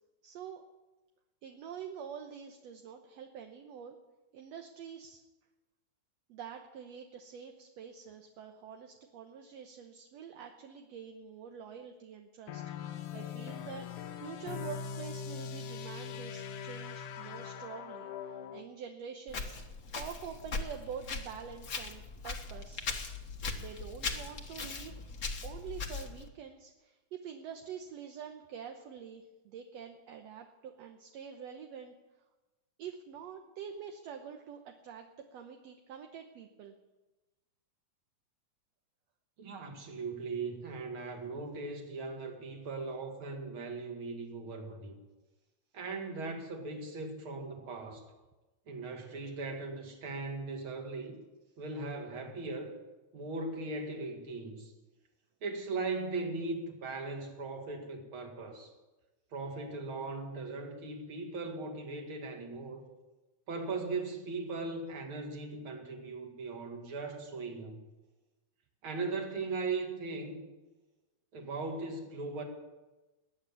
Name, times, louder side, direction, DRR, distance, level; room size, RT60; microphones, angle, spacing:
voice 1, 0.2-0.6 1.4-4.0 4.3-5.2 6.3-13.9 14.2-19.6 20.0-22.8 23.6-25.0 25.4-31.9 32.8-36.8, right 7 dB, 65° right, 4 dB, 1.9 m, -46 dB
sound 1, 12.5-18.7, left 7 dB, 80° left, 2.5 m, -41 dB
Walk footsteps, 19.3-26.3, left 4 dB, 45° left, 1.2 m, -39 dB
voice 2, 39.4-45.0 45.7-48.0 48.7-51.2 51.6-52.7 53.1-54.7 55.4-58.7 59.3-62.8 63.5-67.8 68.8-70.5 71.3-72.4, right 3 dB, 45° right, 3 dB, 2.7 m, -38 dB
20.5 x 9.6 x 7.2 m, 1.1 s
omnidirectional pair, 3.5 m